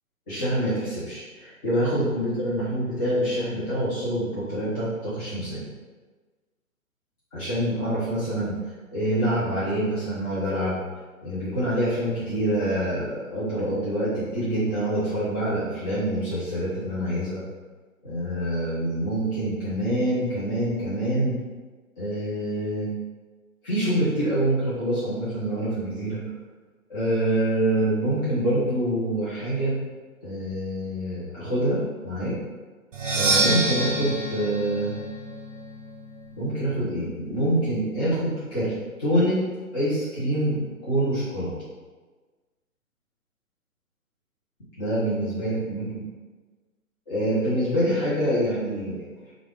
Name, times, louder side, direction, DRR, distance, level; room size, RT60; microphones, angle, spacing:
voice 1, 0.3-5.6 7.3-10.8 11.2-17.4 18.0-21.4 22.0-22.9 23.6-26.2 26.9-29.8 30.2-32.3 33.1-34.9 36.4-38.7 39.0-39.4 39.7-40.6 40.9-41.5 44.8-46.0 47.1-49.3, right 1 dB, 15° left, -12 dB, 0.6 m, -26 dB
Percussion, 32.9-36.7, right 2 dB, 60° right, 0.6 m, -27 dB
3.3 x 2.4 x 3.6 m, 1.3 s
figure-of-eight pair, 130°, 43 cm